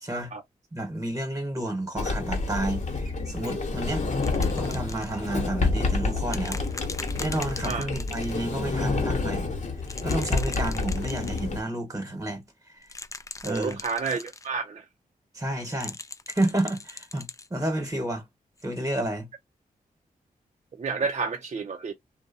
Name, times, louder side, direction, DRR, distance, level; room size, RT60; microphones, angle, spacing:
voice 1, 0.0-0.3 0.7-4.0 4.5-6.6 7.2-9.5 10.0-12.4 13.4-13.8 14.0-14.1 15.3-16.0 16.3-18.2 18.6-19.3, right 1 dB, 20° right, 1.2 m, -30 dB
Sliding door, 2.0-11.6, left 3 dB, 50° left, 1.0 m, -28 dB
sound 1, 4.2-5.2 6.3-8.4 9.8-11.5 12.8-14.5 15.6-17.5 18.6-18.7, left 3 dB, 20° left, 0.4 m, -40 dB
voice 2, 13.4-14.9 20.7-21.9, right 4 dB, 50° right, 0.5 m, -30 dB
2.6 x 2.1 x 2.5 m
cardioid pair, 60°, 15 cm